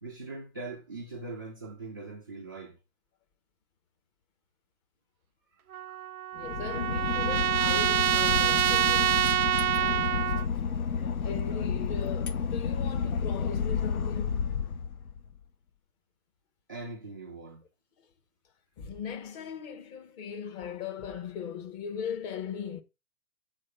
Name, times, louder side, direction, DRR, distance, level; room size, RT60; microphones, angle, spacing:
voice 1, 0.0-2.8 5.5-5.6 16.7-17.6, right 3 dB, 15° right, 0.3 m, -41 dB
Trumpet, 5.7-10.5, right 12 dB, 75° right, 0.5 m, -26 dB
voice 2, 6.3-9.2 9.8-10.3 11.2-14.8 18.8-22.8, left 7 dB, 25° left, 0.9 m, -38 dB
Boat Water vehicle / Engine, 6.4-15.4, left 6 dB, 75° left, 0.9 m, -31 dB
7.6 x 3.2 x 5.4 m
figure-of-eight pair, 120°, 44 cm